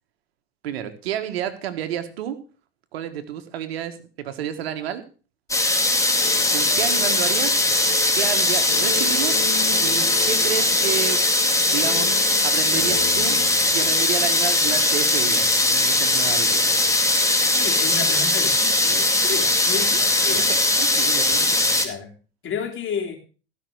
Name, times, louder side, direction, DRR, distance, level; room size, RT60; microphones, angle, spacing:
voice 1, 0.6-2.4 2.9-5.0 6.5-7.6 8.1-9.4 9.8-11.2 11.7-12.1 12.4-13.4 13.7-16.7 19.9-20.0 20.8-21.6, right 10 dB, 80° right, 9 dB, 1.7 m, -30 dB
sound 1, 5.5-21.8, left 2 dB, 10° left, 2.3 m, -20 dB
sound 2, 6.2-15.2, left 8 dB, 80° left, 3.0 m, -37 dB
voice 2, 17.5-20.5 21.8-22.1 22.4-23.2, left 6 dB, 40° left, 3 dB, 3.9 m, -31 dB
15.5 x 6.0 x 6.5 m, 0.37 s
hypercardioid pair, 80°, 30 cm